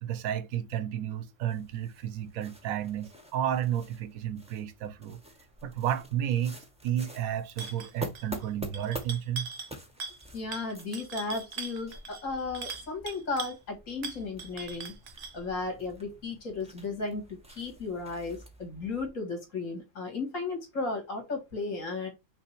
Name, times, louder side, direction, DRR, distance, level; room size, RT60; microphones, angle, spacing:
voice 1, 0.0-5.2 5.6-6.6 6.8-9.5, right 10 dB, 80° right, 1.1 m, -32 dB
sound 1, 1.5-19.1, equal, 5° right, 0.5 m, -47 dB
sound 2, 7.6-8.5 8.7-9.7 10.0-10.3 10.5-13.6 14.0-15.4, right 4 dB, 60° right, 0.7 m, -40 dB
voice 2, 10.3-14.9 15.3-22.1, left 3 dB, 65° left, 2.1 m, -35 dB
5.7 x 2.0 x 4.4 m
omnidirectional pair, 1.5 m